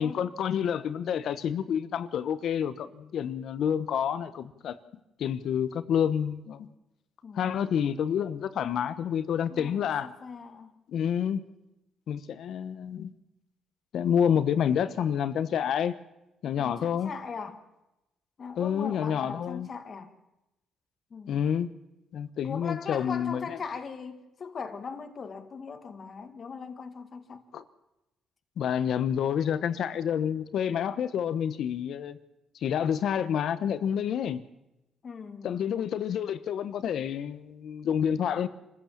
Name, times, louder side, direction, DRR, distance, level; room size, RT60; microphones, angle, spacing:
voice 1, 0.0-4.8 5.2-6.7 7.3-10.1 10.9-11.4 12.1-13.1 13.9-15.9 16.4-17.1 18.6-19.7 21.3-21.7 22.1-23.6 27.5-27.6 28.6-32.2 32.6-34.4 35.4-38.5, left 8 dB, 70° left, 1.1 m, -28 dB
voice 2, 7.2-7.6 9.5-10.7 16.6-17.6 18.4-20.1 21.1-21.4 22.4-27.4 35.0-35.6, left 5 dB, 45° left, 1.8 m, -40 dB
26.0 x 15.0 x 7.4 m
cardioid pair, 90°, 0 cm